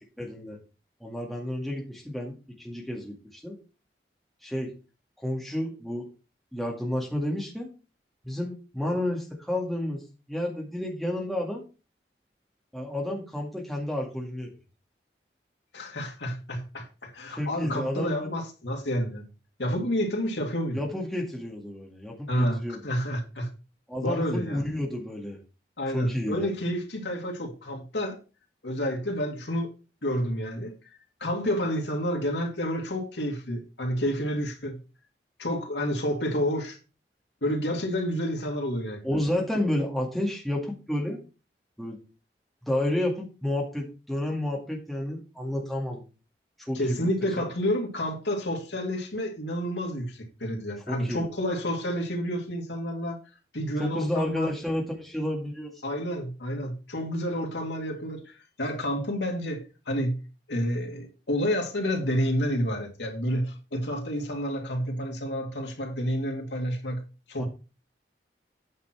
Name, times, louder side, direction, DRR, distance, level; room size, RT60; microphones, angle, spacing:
voice 1, 0.2-0.6 1.0-3.6 4.4-4.7 5.2-6.1 6.5-7.7 8.2-10.0 10.3-11.6 12.7-14.5 17.3-18.4 20.7-22.8 23.9-25.4 25.9-26.5 39.0-41.2 41.8-42.0 42.6-46.0 46.7-47.1 50.9-51.3 53.8-55.7 67.4-67.5, left 1 dB, ahead, 2.1 m, -31 dB
voice 2, 15.7-19.3 19.6-20.8 22.3-23.5 24.0-24.6 25.8-28.2 28.6-29.7 30.0-30.7 31.2-34.8 35.4-36.8 37.4-39.0 46.7-53.2 53.5-54.5 55.8-60.2 60.5-67.0 67.3-67.5, equal, 85° left, 2.4 m, -29 dB
9.2 x 6.0 x 4.6 m
head